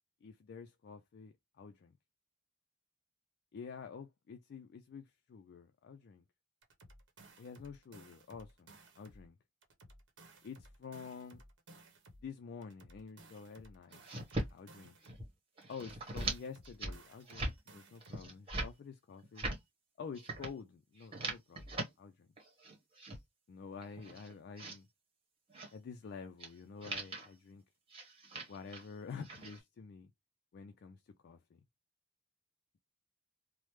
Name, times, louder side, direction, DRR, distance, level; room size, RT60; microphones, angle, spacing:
voice 1, 0.2-2.0 3.5-6.2 7.4-9.4 10.4-11.4 12.2-14.0 14.5-15.0 15.7-19.5 20.0-22.3 23.5-24.9 25.7-27.6 28.5-30.1 30.5-31.6, left 5 dB, 50° left, 0.3 m, -49 dB
sound 1, 6.6-9.3 9.6-12.3 12.6-15.3 15.6-18.3, right 1 dB, 55° right, 0.9 m, -58 dB
sound 2, 13.9-14.5 14.8-15.3 15.6-16.4 16.6-17.0 17.3-17.5 18.0-18.7 19.2-19.6 20.1-20.5 21.0-21.9 22.4-23.2 23.7-24.8 25.5-25.7 26.4-26.5 26.8-27.3 27.9-28.9 29.2-29.6, right 2 dB, 25° right, 1.1 m, -41 dB
3.2 x 2.0 x 3.0 m
head